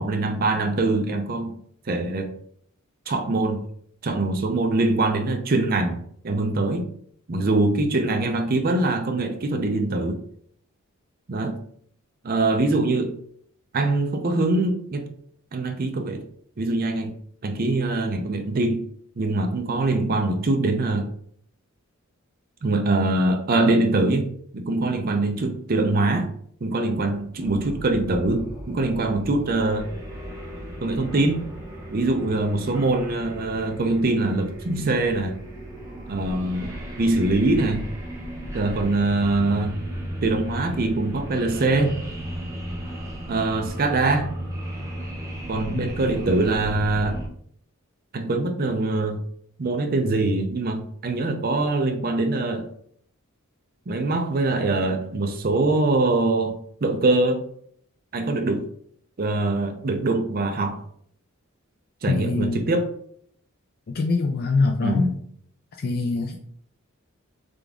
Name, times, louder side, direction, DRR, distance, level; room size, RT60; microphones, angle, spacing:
voice 1, 0.0-1.5 1.8-2.3 3.1-3.6 4.0-6.9 7.3-10.2 11.3-11.6 12.2-13.2 13.7-15.1 15.5-16.2 16.6-17.1 17.4-18.8 19.2-21.1 22.6-26.3 26.6-29.9 30.8-31.4 31.9-35.4 36.1-37.8 38.5-39.8 40.2-42.0 43.3-44.3 45.5-47.2 48.1-49.2 49.6-52.7 53.9-57.4 58.1-58.7 59.2-60.8 62.0-62.9 64.8-65.2, right 2 dB, 45° right, 4 dB, 0.5 m, -23 dB
sound 1, 27.4-47.3, equal, 15° right, 0.8 m, -35 dB
voice 2, 45.6-45.9 62.1-62.6 63.9-65.1 65.8-66.4, left 3 dB, 45° left, 3 dB, 0.4 m, -24 dB
3.8 x 3.4 x 3.5 m, 0.64 s
head